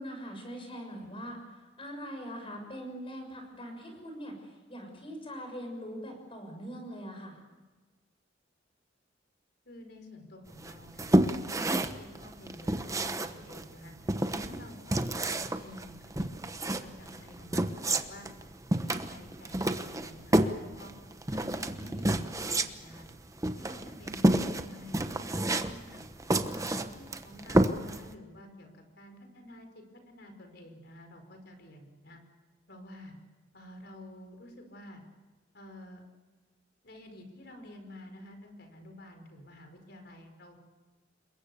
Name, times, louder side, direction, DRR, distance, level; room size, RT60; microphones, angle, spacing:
voice 1, 0.0-7.4 14.4-14.7 23.7-23.8, equal, 30° left, 4 dB, 6.6 m, -42 dB
voice 2, 9.6-13.9 14.4-15.9 16.2-16.3 16.8-18.3 18.7-20.9 21.3-23.1 23.5-26.0 26.5-32.2 32.7-33.1 33.5-35.0 35.5-36.0 36.8-40.6, left 1 dB, 60° left, 5 dB, 5.0 m, -50 dB
sound 1, 10.6-28.1, right 1 dB, 15° right, 1.0 m, -29 dB
28.0 x 23.0 x 7.0 m, 1.3 s
head